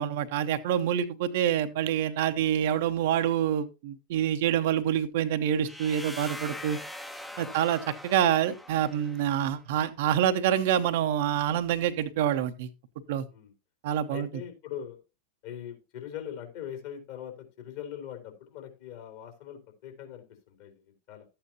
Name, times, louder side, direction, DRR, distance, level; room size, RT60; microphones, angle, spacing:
voice 1, 0.0-6.8 7.4-12.7 13.1-13.3 13.8-14.3, right 10 dB, 50° right, 0.8 m, -26 dB
sound 1, 5.6-9.5, left 1 dB, 5° left, 0.9 m, -42 dB
voice 2, 14.1-15.0 15.4-21.3, left 9 dB, 50° left, 3.4 m, -41 dB
12.5 x 8.7 x 2.8 m
figure-of-eight pair, 90°, 0 cm